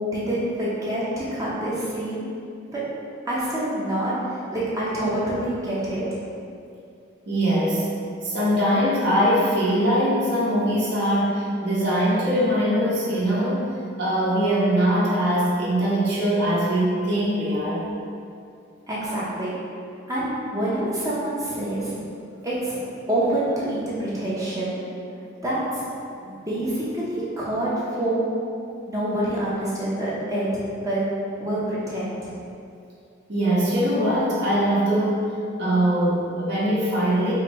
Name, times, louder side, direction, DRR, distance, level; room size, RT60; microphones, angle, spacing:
voice 1, 0.1-2.3 2.7-2.8 3.3-6.0 18.9-19.6 20.1-22.0 22.4-24.8 25.4-25.9 26.2-28.2 28.9-30.5 30.8-31.0 31.4-32.3, right 1 dB, 15° right, -8 dB, 0.6 m, -26 dB
voice 2, 7.3-7.8 8.2-17.8 33.3-37.3, equal, 55° right, -7 dB, 0.8 m, -22 dB
4.3 x 2.6 x 2.9 m, 2.5 s
head